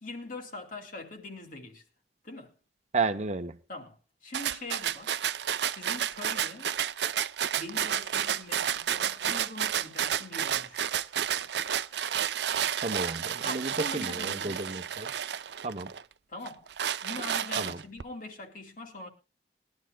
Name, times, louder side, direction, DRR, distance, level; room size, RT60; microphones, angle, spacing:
voice 1, 0.0-1.8 2.2-2.6 3.7-5.2 5.7-6.7 7.5-10.8 13.4-14.6 16.3-16.7 17.0-19.1, left 2 dB, 50° left, 2.5 m, -42 dB
voice 2, 2.9-3.6 12.8-15.1 15.6-15.9 17.6-17.8, right 3 dB, 40° right, 0.9 m, -32 dB
sound 1, 4.3-16.0 16.5-18.0, right 9 dB, 75° right, 0.6 m, -31 dB
21.0 x 11.5 x 2.3 m
head